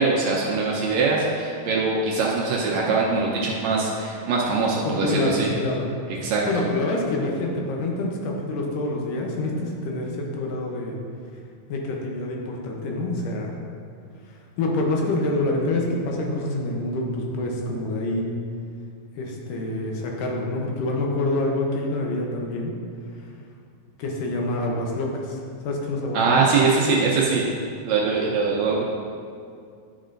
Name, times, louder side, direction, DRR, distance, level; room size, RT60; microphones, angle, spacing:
voice 1, 0.0-5.5 6.2-6.7 26.1-27.5 27.9-28.8, right 4 dB, 75° right, -3 dB, 1.7 m, -22 dB
voice 2, 4.9-5.9 6.5-11.0 11.7-13.5 14.6-18.3 19.2-22.7 24.0-25.4 25.6-26.2, left 2 dB, 85° left, 0 dB, 2.5 m, -26 dB
10.5 x 5.3 x 2.6 m, 2.3 s
omnidirectional pair, 3.7 m